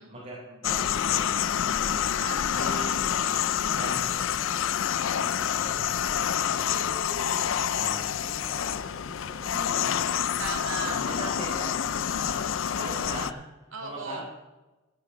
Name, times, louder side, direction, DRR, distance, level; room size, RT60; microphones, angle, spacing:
voice 1, 0.0-2.1 2.6-3.0 3.7-4.8 5.1-9.6 10.8-11.8 12.1-14.2, right 1 dB, 35° right, -7 dB, 4.8 m, -42 dB
sound 1, 0.6-13.3, left 9 dB, 70° left, 0.5 m, -27 dB
voice 2, 2.2-3.8 6.7-7.5 9.5-11.0 13.7-14.2, right 3 dB, 70° right, 3 dB, 2.2 m, -39 dB
15.5 x 11.0 x 3.9 m, 1.1 s
head